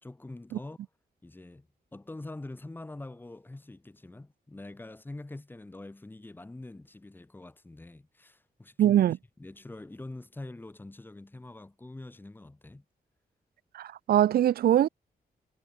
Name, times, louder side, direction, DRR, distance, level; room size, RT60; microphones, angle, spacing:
voice 1, 0.0-0.8 1.2-1.7 1.9-9.0 9.4-12.8, left 2 dB, 10° left, 4.1 m, -44 dB
voice 2, 8.8-9.2 13.7-14.9, right 11 dB, 75° right, 0.6 m, -22 dB
wide cardioid pair, 165°, 16 cm